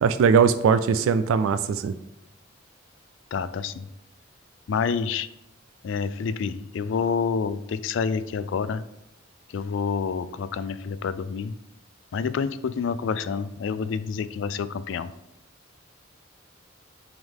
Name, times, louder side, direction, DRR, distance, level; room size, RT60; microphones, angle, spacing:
voice 1, 0.0-1.9, right 6 dB, 90° right, 11 dB, 0.3 m, -20 dB
voice 2, 3.3-3.9 4.7-5.3 5.8-8.8 9.5-11.5 12.1-15.1, left 5 dB, 65° left, 14 dB, 0.3 m, -28 dB
7.8 x 3.7 x 3.5 m, 0.86 s
head